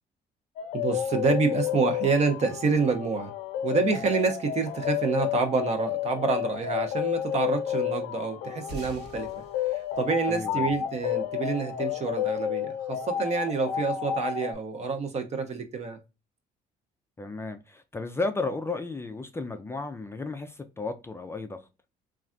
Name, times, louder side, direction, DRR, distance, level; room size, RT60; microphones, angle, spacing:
sound 1, 0.6-14.5, left 11 dB, 85° left, 0.5 m, -31 dB
voice 1, 0.7-3.3 3.6-9.4 9.7-16.0, right 4 dB, 40° right, 0.7 m, -27 dB
sound 2, 8.7-11.5, right 1 dB, 80° right, 1.2 m, -46 dB
voice 2, 10.2-10.7 17.2-21.6, left 3 dB, 15° left, 0.3 m, -33 dB
3.2 x 2.4 x 2.5 m
cardioid pair, 110°, 17 cm